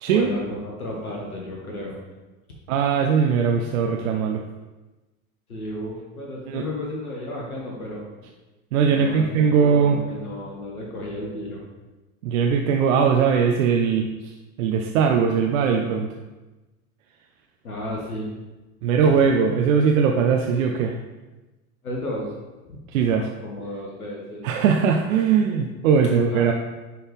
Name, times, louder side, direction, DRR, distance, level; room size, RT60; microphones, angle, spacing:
voice 1, 0.1-2.0 5.5-8.0 8.8-11.6 17.6-18.3 19.0-19.1 21.8-22.3 22.7-22.8 23.1-24.5 26.0-26.5, left 1 dB, 90° left, -2 dB, 1.3 m, -33 dB
voice 2, 2.7-4.4 6.5-6.6 8.7-10.0 12.2-14.3 14.6-16.1 18.8-21.0 22.9-23.3 24.4-26.5, right 6 dB, 65° right, 3 dB, 0.7 m, -20 dB
10.0 x 4.0 x 3.5 m, 1.1 s
hypercardioid pair, 80°, 43 cm